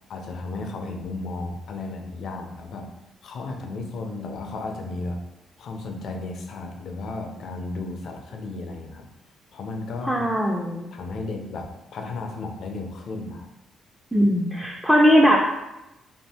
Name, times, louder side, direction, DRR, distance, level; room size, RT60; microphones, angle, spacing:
voice 1, 0.1-2.9 3.2-5.2 5.6-9.1 9.5-10.3 10.9-13.5, left 3 dB, 65° left, 3 dB, 0.5 m, -34 dB
voice 2, 10.0-10.9 14.1-15.5, equal, 5° right, -2 dB, 0.4 m, -19 dB
2.7 x 2.4 x 3.3 m, 0.96 s
cardioid pair, 90°, 0 cm